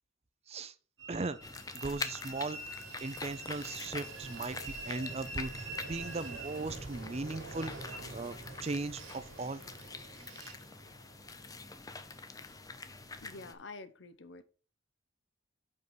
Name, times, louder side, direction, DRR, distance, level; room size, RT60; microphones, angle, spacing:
Train, 1.0-13.4, right 2 dB, 70° right, 2.1 m, -46 dB
voice 1, 1.1-1.4 1.7-2.6 3.0-7.7 8.1-9.6, right 3 dB, 30° right, 0.5 m, -38 dB
sound 1, 1.4-13.5, left 4 dB, 20° left, 0.6 m, -45 dB
voice 2, 13.2-14.4, left 3 dB, 65° left, 0.8 m, -48 dB
5.4 x 5.4 x 6.1 m
head